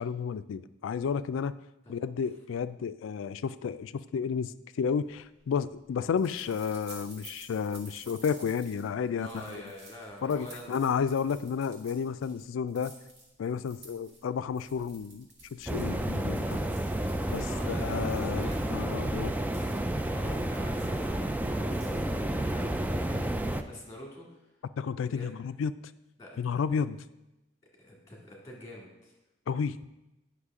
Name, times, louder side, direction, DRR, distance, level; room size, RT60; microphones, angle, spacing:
voice 1, 0.0-1.6 1.9-9.6 10.2-12.9 13.4-16.6 17.3-19.3 24.8-25.7 26.4-27.0 29.5-29.8, left 6 dB, 85° left, 14 dB, 0.3 m, -32 dB
sound 1, 5.0-22.4, right 2 dB, 65° right, 2.1 m, -53 dB
voice 2, 9.1-10.8 16.9-18.6 20.1-21.9 22.3-24.3 25.0-25.3 26.2-26.4 27.8-29.1, left 1 dB, 15° left, -2 dB, 2.0 m, -46 dB
sound 2, 15.7-23.6, right 1 dB, 10° right, 0.3 m, -30 dB
9.6 x 5.8 x 3.6 m, 0.96 s
head